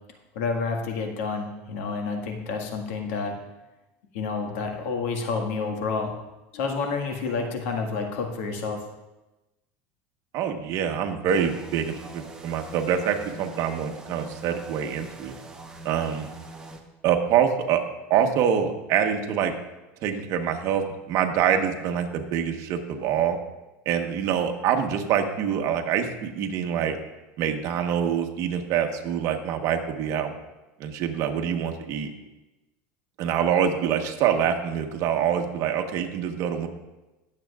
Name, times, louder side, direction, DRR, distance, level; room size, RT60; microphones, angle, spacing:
voice 1, 0.3-3.4 4.1-6.2 6.5-8.8, left 4 dB, 80° left, 3 dB, 1.8 m, -29 dB
voice 2, 10.3-15.3 15.8-16.3 17.0-17.8 18.1-19.5 20.0-23.4 23.8-27.0 27.4-30.3 30.8-32.1 33.2-36.7, right 8 dB, 50° right, 5 dB, 1.2 m, -25 dB
sound 1, 11.3-16.8, right 3 dB, 10° right, 1.1 m, -43 dB
20.0 x 7.6 x 2.4 m, 1.0 s
supercardioid pair, 135°, 7 cm